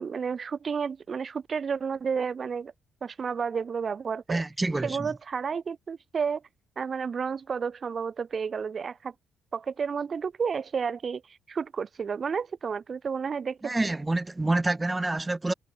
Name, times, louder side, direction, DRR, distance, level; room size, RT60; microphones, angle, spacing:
voice 1, 0.0-2.7 3.0-4.4 4.8-6.4 6.8-9.1 9.5-13.7, right 6 dB, 45° right, 1.0 m, -31 dB
voice 2, 4.3-5.1 13.6-15.5, right 2 dB, 15° right, 0.4 m, -27 dB
cardioid pair, 90°, 0 cm